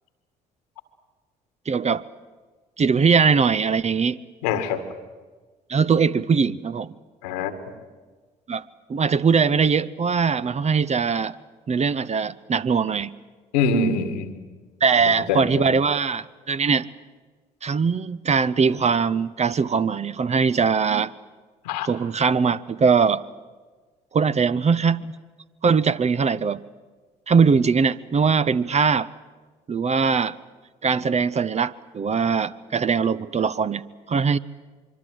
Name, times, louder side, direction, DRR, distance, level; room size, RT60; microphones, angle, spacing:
voice 1, 1.7-2.0 2.8-4.2 5.7-6.9 8.5-8.6 8.9-11.4 11.7-13.1 14.8-16.9 17.6-21.1 21.8-23.2 24.1-25.1 25.6-26.6 27.3-29.1 29.7-30.3 30.8-33.8 34.1-34.4, right 5 dB, 35° right, 15 dB, 0.9 m, -21 dB
voice 2, 4.4-4.8 7.2-7.5 13.5-14.3 15.0-15.5 21.6-21.9, left 4 dB, 80° left, 9 dB, 2.0 m, -24 dB
24.5 x 24.0 x 7.9 m, 1.4 s
hypercardioid pair, 50°, 20 cm